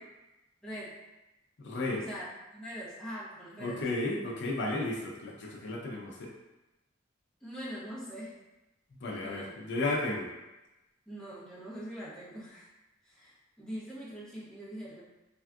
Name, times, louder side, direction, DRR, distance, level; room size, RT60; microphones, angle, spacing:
voice 1, 0.6-1.0 2.0-2.3 2.5-3.8 7.4-8.4 9.1-9.5 11.1-12.7 13.0-15.0, equal, 5° left, -9 dB, 0.7 m, -43 dB
voice 2, 1.6-2.0 3.6-6.3 9.0-10.3, left 2 dB, 65° left, -2 dB, 0.5 m, -33 dB
3.5 x 2.3 x 2.3 m, 1.0 s
head